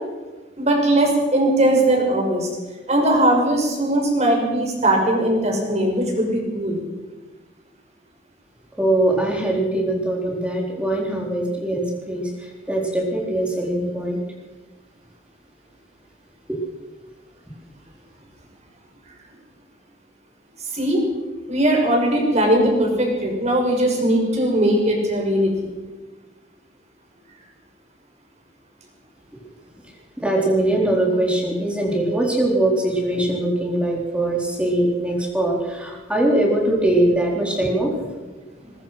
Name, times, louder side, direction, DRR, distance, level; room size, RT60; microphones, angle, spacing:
voice 1, 0.6-2.5 2.9-6.8 20.7-21.0 21.5-25.5, right 1 dB, 35° right, 1 dB, 6.5 m, -19 dB
voice 2, 8.8-14.2 16.5-16.6 30.2-38.1, right 1 dB, 5° right, -1 dB, 4.2 m, -22 dB
22.5 x 21.5 x 6.0 m, 1.3 s
head